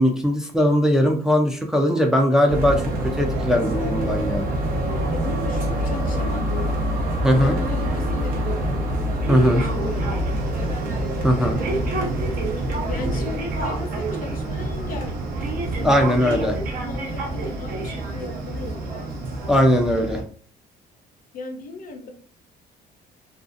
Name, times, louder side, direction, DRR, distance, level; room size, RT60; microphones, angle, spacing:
voice 1, 0.0-4.5 7.2-7.6 9.3-9.6 11.2-11.6 15.8-16.6 19.5-20.2, equal, 5° right, 2 dB, 0.4 m, -19 dB
sound 1, 2.5-20.2, right 1 dB, 55° right, 0.8 m, -26 dB
voice 2, 5.1-6.7 7.4-8.9 9.5-11.1 12.9-15.2 15.8-16.3 16.8-19.1 21.3-22.1, left 3 dB, 55° left, 4 dB, 0.7 m, -36 dB
2.4 x 2.3 x 2.5 m, 0.43 s
cardioid pair, 110°, 17 cm